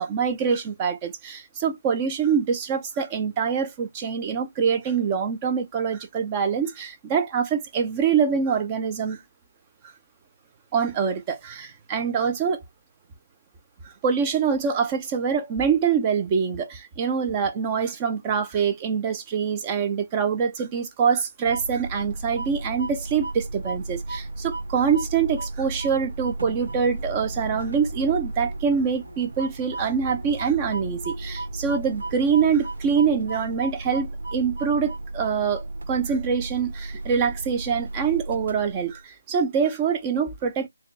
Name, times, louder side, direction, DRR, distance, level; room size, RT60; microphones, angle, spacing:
voice 1, 0.0-9.2 10.7-12.6 13.8-40.7, right 6 dB, 15° right, 0.5 m, -25 dB
sound 1, 21.4-38.9, right 2 dB, 70° right, 1.4 m, -34 dB
4.6 x 2.2 x 3.1 m
figure-of-eight pair, 170°, 0 cm